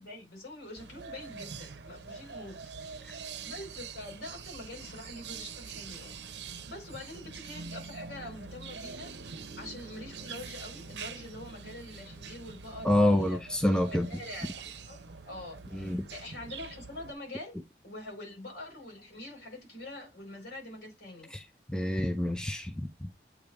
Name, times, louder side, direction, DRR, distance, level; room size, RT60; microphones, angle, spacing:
voice 1, 0.0-6.3 6.6-9.1 9.3-13.4 13.9-15.0 15.2-17.6 17.8-21.3, left 1 dB, 80° left, 4.5 m, -45 dB
sound 1, 0.7-17.1, right 5 dB, 80° right, 0.7 m, -44 dB
voice 2, 12.8-14.1 15.7-16.1 21.3-23.1, left 1 dB, 5° left, 0.5 m, -28 dB
8.2 x 3.3 x 3.4 m
head